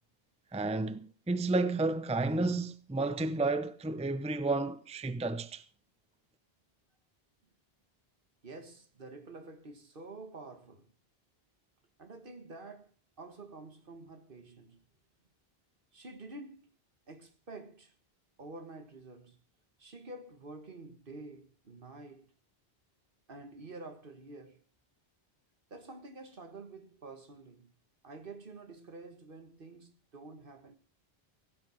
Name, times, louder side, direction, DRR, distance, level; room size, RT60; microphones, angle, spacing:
voice 1, 0.5-5.6, right 3 dB, 10° right, 0.6 m, -31 dB
voice 2, 8.4-10.9 12.0-14.9 15.9-16.7 17.1-17.9 18.4-19.4 19.8-22.3 23.3-24.6 25.7-27.7 28.0-30.8, right 2 dB, 60° right, 1.8 m, -49 dB
16.5 x 8.5 x 6.3 m
omnidirectional pair, 1.0 m